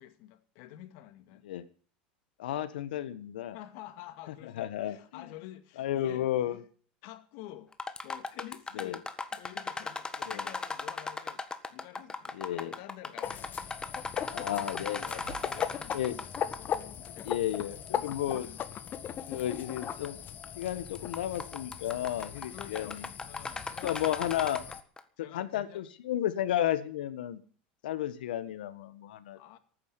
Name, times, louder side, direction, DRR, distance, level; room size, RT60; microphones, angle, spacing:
voice 1, 0.0-1.4 3.5-6.6 7.0-7.7 8.0-13.6 13.9-14.2 14.5-16.3 16.9-17.3 18.3-18.6 22.5-24.2 25.2-25.9 29.3-29.6, left 14 dB, 65° left, 2.2 m, -49 dB
voice 2, 2.4-3.6 4.4-5.3 5.8-6.6 8.7-9.0 10.3-10.5 12.3-12.7 14.3-15.2 15.9-16.2 16.7-16.8 17.2-18.5 19.3-20.2 20.6-23.1 23.8-24.6 25.3-27.4 27.8-29.4, left 12 dB, 80° left, 1.5 m, -33 dB
sound 1, 7.7-16.8 17.0-17.1 17.9-18.0 18.6-18.7 19.8-20.1 20.4-20.7 20.9-25.0, left 3 dB, 15° left, 1.5 m, -38 dB
sound 2, 13.2-24.8, left 9 dB, 40° left, 1.6 m, -38 dB
sound 3, 15.2-16.5, right 10 dB, 70° right, 2.5 m, -50 dB
13.5 x 9.6 x 9.7 m
hypercardioid pair, 95°, 5 cm